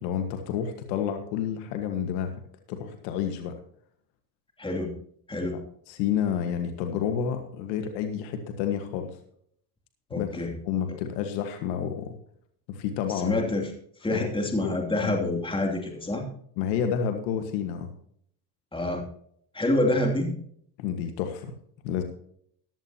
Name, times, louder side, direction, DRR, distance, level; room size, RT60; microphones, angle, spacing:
voice 1, 0.0-2.3 2.7-3.5 5.9-9.1 10.1-12.1 12.7-13.4 14.1-14.3 14.6-15.1 16.6-17.9 20.8-21.5 21.8-22.0, left 8 dB, 90° left, 6 dB, 1.7 m, -30 dB
voice 2, 4.6-4.9 5.3-5.6 10.1-10.5 13.1-13.7 14.0-16.2 18.7-19.0 19.5-20.3, left 1 dB, 10° left, 1 dB, 2.8 m, -27 dB
15.5 x 11.0 x 2.9 m, 0.65 s
supercardioid pair, 100°, 49 cm